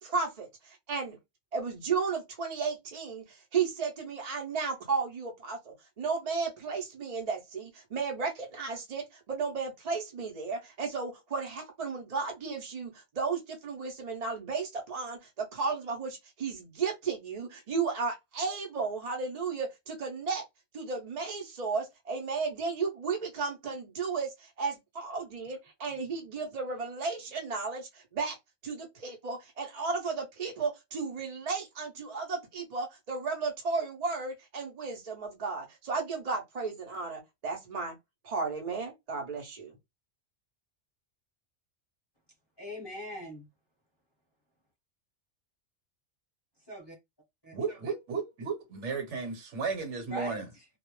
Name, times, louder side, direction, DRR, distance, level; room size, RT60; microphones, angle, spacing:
voice 1, 0.0-1.2 1.5-20.4 20.7-28.4 28.6-37.9 38.2-39.8, right 4 dB, 50° right, 0.5 m, -34 dB
voice 2, 42.6-43.5 46.6-47.0 47.4-47.6 50.1-50.7, equal, 25° left, 0.8 m, -41 dB
voice 3, 47.5-50.5, right 5 dB, 70° right, 1.1 m, -34 dB
2.3 x 2.0 x 3.0 m
omnidirectional pair, 1.3 m